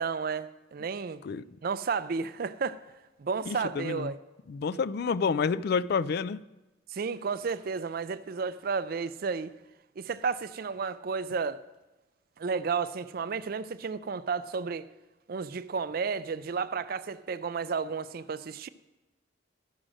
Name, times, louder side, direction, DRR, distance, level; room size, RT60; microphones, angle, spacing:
voice 1, 0.0-1.2 1.6-2.8 3.2-4.2 6.9-9.5 10.0-11.6 12.4-14.9 15.3-18.7, right 5 dB, 50° right, 0.4 m, -32 dB
voice 2, 3.5-4.1 4.5-6.4, left 5 dB, 55° left, 0.3 m, -29 dB
12.0 x 6.3 x 6.3 m
head